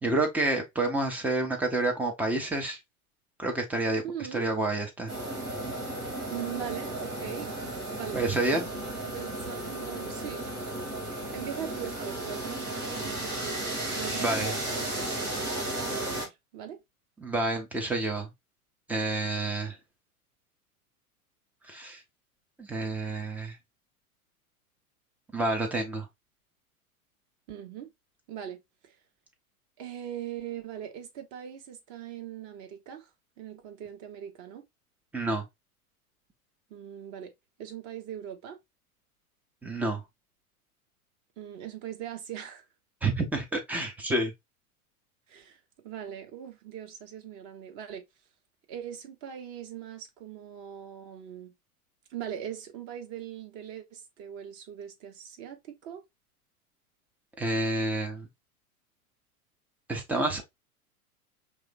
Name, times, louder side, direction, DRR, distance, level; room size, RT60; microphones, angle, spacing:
voice 1, 0.0-2.8 3.4-4.0 4.3-5.1 8.1-8.7 14.2-14.5 17.2-18.3 18.9-19.8 21.7-22.0 22.6-23.6 25.3-26.1 35.1-35.4 39.6-40.0 43.0-44.3 57.4-58.3 59.9-60.4, right 2 dB, 5° right, 0.4 m, -29 dB
voice 2, 4.0-4.5 6.3-7.5 7.9-8.2 8.5-10.5 11.3-16.8 27.5-27.9 28.3-29.0 29.8-33.1 33.4-34.6 36.7-37.3 37.6-38.6 41.4-42.7 45.3-45.6 45.8-48.0 48.7-51.5 52.1-56.0, right 10 dB, 35° right, 1.0 m, -41 dB
sound 1, 5.1-16.3, right 1 dB, 80° right, 2.1 m, -34 dB
4.8 x 3.2 x 2.5 m
figure-of-eight pair, 90°, 44 cm